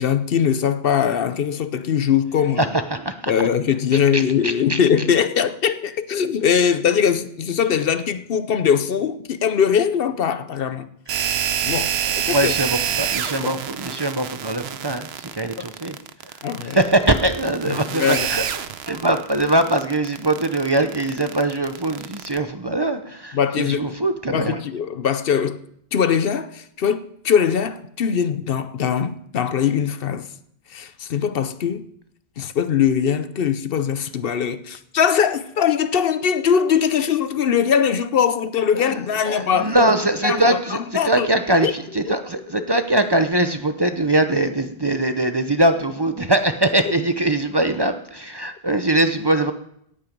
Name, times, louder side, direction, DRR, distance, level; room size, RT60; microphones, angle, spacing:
voice 1, 0.0-2.7 3.3-10.9 11.6-12.5 13.4-13.5 15.6-15.7 16.4-16.8 17.7-18.3 23.3-24.0 24.3-25.6 25.9-30.3 30.7-31.9 32.4-39.7 40.2-41.3 41.6-41.7, left 7 dB, 65° left, 0.9 m, -21 dB
voice 2, 2.6-3.3 4.1-4.8 11.1-11.3 12.3-16.0 16.6-18.4 18.9-24.6 38.7-39.0 39.2-40.8 41.0-49.5, right 1 dB, 25° right, 0.7 m, -22 dB
sound 1, 11.1-22.4, right 9 dB, 90° right, 1.0 m, -27 dB
17.0 x 8.9 x 5.2 m
omnidirectional pair, 1.0 m